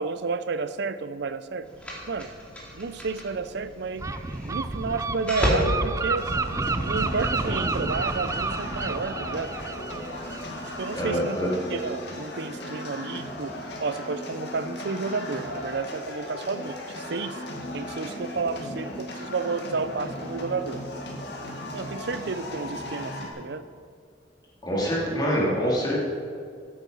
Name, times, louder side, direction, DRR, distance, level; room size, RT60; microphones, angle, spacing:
voice 1, 0.0-1.7 2.1-2.3 2.7-4.1 4.4-6.3 6.8-9.5 10.8-11.4 11.7-17.4 17.7-20.8 21.7-23.7, right 4 dB, 65° right, 13 dB, 0.6 m, -31 dB
sound 1, 1.6-7.7, equal, 5° left, 2.5 m, -32 dB
Gull seagull, 4.0-11.5, right 3 dB, 15° right, 0.4 m, -30 dB
sound 2, 6.2-23.3, left 1 dB, 65° left, 2.2 m, -37 dB
voice 2, 10.9-11.5 24.6-26.0, equal, 25° left, -5 dB, 3.1 m, -25 dB
14.5 x 8.7 x 5.5 m, 2.2 s
head